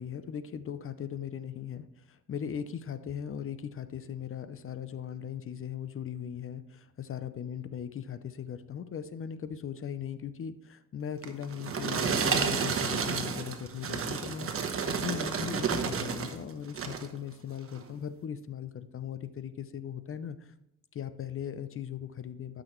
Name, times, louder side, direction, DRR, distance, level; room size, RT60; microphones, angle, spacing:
voice 1, 0.0-20.5 20.9-22.6, left 8 dB, 45° left, 12 dB, 0.7 m, -39 dB
sound 1, 11.2-16.4 16.7-17.1 17.7-17.8, right 6 dB, 45° right, 1.2 m, -31 dB
12.0 x 6.3 x 3.1 m, 0.79 s
cardioid pair, 90°, 30 cm